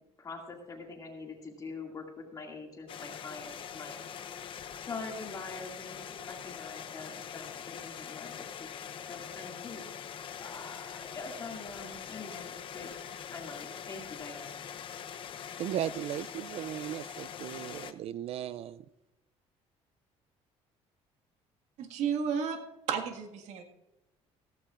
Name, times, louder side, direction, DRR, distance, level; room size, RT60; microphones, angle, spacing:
voice 1, 0.2-4.0 4.8-8.7 9.1-9.9 10.4-14.6, left 3 dB, 30° left, 1 dB, 2.2 m, -44 dB
sound 1, 2.9-17.9, left 8 dB, 45° left, 0.7 m, -43 dB
voice 2, 15.6-18.8, right 11 dB, 55° right, 17 dB, 0.4 m, -36 dB
voice 3, 21.8-22.6 22.9-23.6, right 7 dB, 75° right, 4 dB, 1.7 m, -32 dB
16.0 x 14.5 x 2.5 m, 0.97 s
cardioid pair, 125°, 12 cm